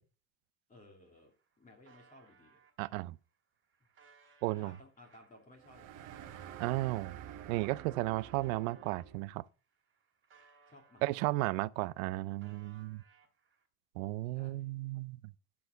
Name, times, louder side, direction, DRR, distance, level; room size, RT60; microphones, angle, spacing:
voice 1, 0.7-2.6 4.5-6.2 8.8-8.9 10.7-11.4 14.2-14.7, left 1 dB, 20° left, 2.9 m, -59 dB
sound 1, 1.2-2.7 3.3-9.1 9.6-11.5 11.8-13.7, right 5 dB, 30° right, 2.5 m, -65 dB
voice 2, 2.8-3.2 4.4-4.7 6.6-7.2 7.5-9.4 11.0-13.0 14.0-15.2, right 19 dB, 90° right, 0.6 m, -34 dB
sound 2, 5.6-9.3, right 10 dB, 55° right, 1.1 m, -49 dB
12.0 x 4.7 x 5.9 m
supercardioid pair, 120°, 39 cm